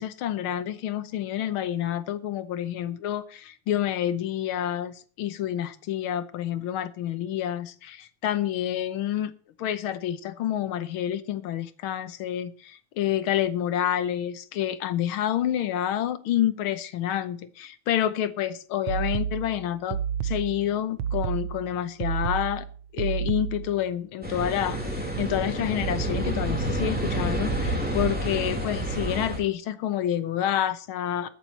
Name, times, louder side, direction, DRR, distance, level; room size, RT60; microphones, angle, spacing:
voice 1, 0.0-9.3 9.6-22.7 22.9-31.3, left 11 dB, 85° left, 1.8 m, -28 dB
sound 1, 18.9-23.8, right 8 dB, 75° right, 1.5 m, -30 dB
sound 2, 24.2-29.4, right 1 dB, 5° right, 3.0 m, -29 dB
22.0 x 8.9 x 2.8 m
omnidirectional pair, 2.3 m